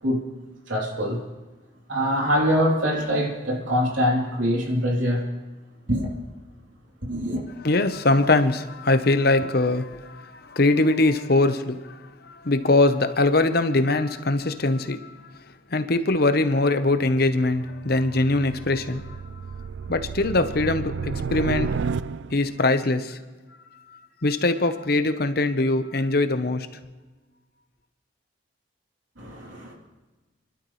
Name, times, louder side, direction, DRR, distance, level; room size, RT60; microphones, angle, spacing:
voice 1, 0.7-1.2 1.9-5.2 5.9-6.1 7.0-7.4 29.2-29.7, equal, 85° right, 3.3 m, -24 dB
voice 2, 7.6-19.2 19.9-21.7 22.3-23.2 23.7-26.7, left 2 dB, 50° left, 0.9 m, -22 dB
sound 1, 17.3-22.6, right 5 dB, 70° right, 0.3 m, -32 dB
28.5 x 12.0 x 3.2 m
head